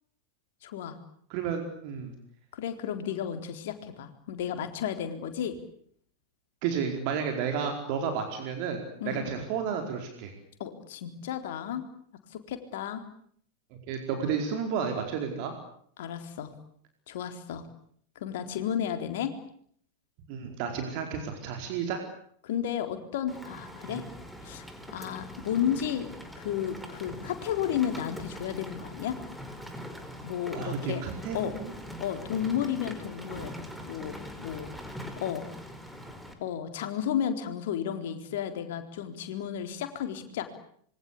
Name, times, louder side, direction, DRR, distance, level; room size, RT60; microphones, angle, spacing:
voice 1, 0.6-1.0 2.5-5.5 9.0-9.3 10.6-11.8 12.3-13.0 16.0-16.5 17.1-17.6 18.2-19.3 22.4-24.0 24.4-29.2 30.2-31.0 31.3-31.5 32.0-33.6 33.8-34.7 35.2-35.4 36.4-40.5, left 9 dB, 55° left, 8 dB, 4.0 m, -33 dB
voice 2, 1.3-2.1 6.6-10.3 13.7-15.5 20.3-22.0 30.5-31.7, right 6 dB, 45° right, 5 dB, 4.7 m, -32 dB
Rain, 23.3-36.3, equal, ahead, 4.7 m, -42 dB
26.5 x 24.0 x 8.6 m, 0.64 s
figure-of-eight pair, 90°, 0 cm